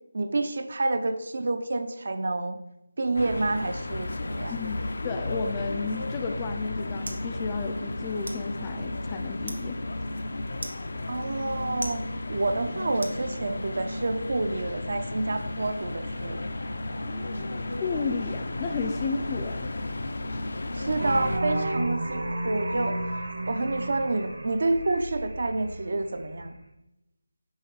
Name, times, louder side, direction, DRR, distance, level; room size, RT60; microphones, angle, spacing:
voice 1, 0.1-2.6 3.0-4.6 11.1-12.0 12.3-16.4 20.7-26.5, right 2 dB, 55° right, 8 dB, 0.6 m, -29 dB
sound 1, 3.1-21.4, left 2 dB, 65° left, 0.6 m, -33 dB
voice 2, 5.0-9.8 17.1-19.7, left 5 dB, 15° left, 6 dB, 0.3 m, -33 dB
sound 2, 6.2-13.8, right 1 dB, 90° right, 1.1 m, -45 dB
sound 3, 21.0-26.5, right 1 dB, 75° right, 1.9 m, -32 dB
5.6 x 4.9 x 4.8 m, 0.90 s
figure-of-eight pair, 170°, 0 cm